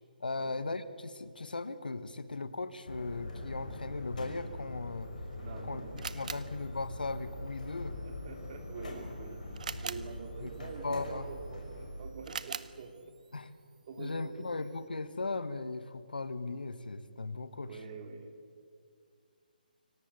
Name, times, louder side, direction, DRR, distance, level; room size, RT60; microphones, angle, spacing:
voice 1, 0.2-5.1 5.7-5.8 6.1-8.0 9.7-9.9 10.4-11.3 13.3-13.5 14.0-17.8, left 3 dB, 70° left, 13 dB, 1.4 m, -38 dB
sound 1, 2.9-12.1, left 1 dB, 55° left, 5.9 m, -43 dB
Camera, 5.0-14.9, right 6 dB, 55° right, 0.9 m, -47 dB
voice 2, 5.4-6.0 8.0-9.5 9.8-13.1 13.9-14.5 17.6-18.5, right 5 dB, 35° right, 5 dB, 3.2 m, -46 dB
25.5 x 17.5 x 8.4 m, 2.2 s
figure-of-eight pair, 145°, 5 cm